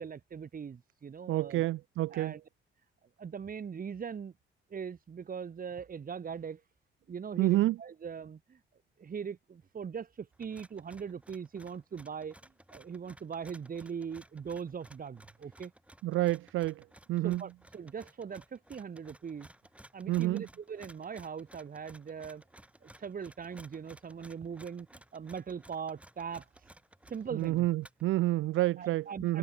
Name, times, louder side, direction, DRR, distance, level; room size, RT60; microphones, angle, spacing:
voice 1, 0.0-1.6 2.1-2.4 3.2-4.3 4.7-6.6 7.1-8.6 9.0-12.3 12.7-15.7 17.2-19.5 19.9-22.4 22.8-26.7 27.1-27.7 28.8-29.4, right 6 dB, 45° right, 5.1 m, -41 dB
voice 2, 1.3-2.4 7.4-7.8 16.0-17.4 20.1-20.4 27.3-29.4, right 16 dB, 90° right, 1.3 m, -29 dB
sound 1, 10.3-28.1, right 1 dB, 5° right, 4.8 m, -57 dB
cardioid pair, 90°, 20 cm